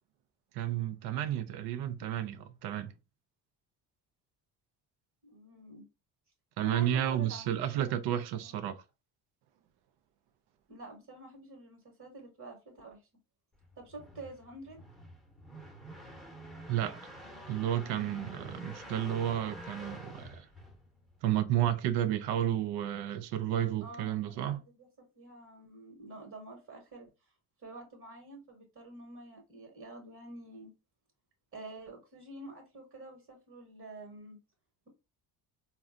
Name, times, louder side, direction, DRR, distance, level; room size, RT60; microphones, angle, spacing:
voice 1, 0.5-2.9 6.6-8.8 16.7-17.0 17.5-20.4 21.2-24.6, right 11 dB, 80° right, 0.6 m, -32 dB
voice 2, 5.2-5.8 6.6-7.5 7.7-7.9 8.4-8.7 10.7-13.0 13.8-14.8 23.8-27.1 27.6-30.7 31.5-34.4, right 2 dB, 45° right, 1.3 m, -48 dB
sound 1, 13.6-21.2, equal, ahead, 0.9 m, -48 dB
3.7 x 2.3 x 2.4 m
cardioid pair, 100°, 39 cm